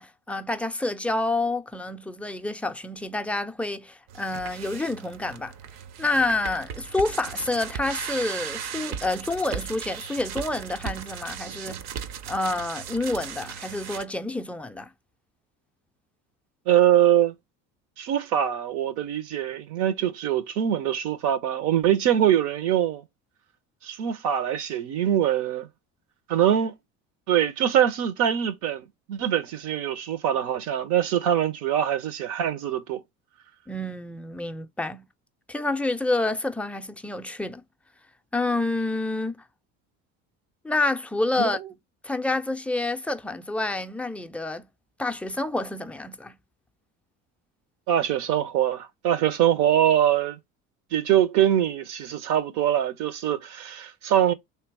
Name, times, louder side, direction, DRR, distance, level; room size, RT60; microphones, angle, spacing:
voice 1, 0.0-5.5 6.0-11.9 12.3-14.9 33.7-35.1 35.5-37.6 38.3-39.4 40.6-41.6 42.0-44.7 45.0-46.4, left 2 dB, 5° left, 0.3 m, -28 dB
sound 1, 4.1-14.0, right 8 dB, 65° right, 0.6 m, -37 dB
voice 2, 16.7-17.3 18.0-23.0 23.8-25.7 26.3-26.8 27.3-33.0 41.4-41.6 47.9-50.4 50.9-54.3, right 10 dB, 85° right, 0.9 m, -23 dB
3.3 x 3.1 x 4.7 m
cardioid pair, 130°, 29 cm